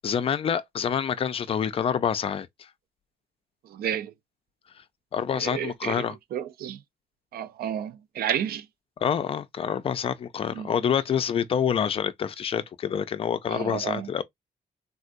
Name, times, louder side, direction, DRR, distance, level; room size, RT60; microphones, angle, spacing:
voice 1, 0.0-2.7 5.1-6.1 9.0-14.2, left 8 dB, 35° left, 0.4 m, -27 dB
voice 2, 3.6-4.1 5.3-6.0 6.3-6.8 7.3-8.7 10.5-10.7 13.5-14.1, right 10 dB, 70° right, 0.5 m, -31 dB
3.6 x 2.2 x 2.5 m
wide cardioid pair, 175°, 16 cm